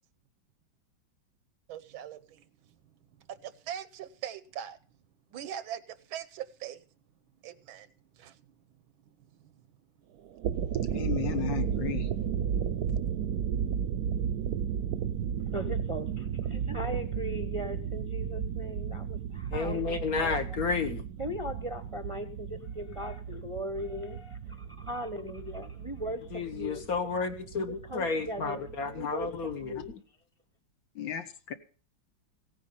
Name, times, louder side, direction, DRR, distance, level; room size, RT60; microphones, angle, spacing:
voice 1, 1.7-2.4 3.3-4.8 5.3-6.8 7.4-7.9 8.2-8.4 9.2-9.5, right 10 dB, 85° right, 14 dB, 1.7 m, -41 dB
sound 1, 10.2-29.9, right 8 dB, 60° right, 1.1 m, -34 dB
voice 2, 10.8-12.1 28.9-29.1 29.8-29.9 31.0-31.5, left 10 dB, 70° left, 9 dB, 1.8 m, -35 dB
voice 3, 15.5-20.4 21.2-26.2 26.5-26.8 27.9-29.3 29.6-29.9, equal, 20° right, 6 dB, 0.9 m, -38 dB
voice 4, 19.5-21.1 26.3-30.0, left 5 dB, 50° left, 7 dB, 1.6 m, -32 dB
16.5 x 9.3 x 5.6 m, 0.39 s
omnidirectional pair, 2.2 m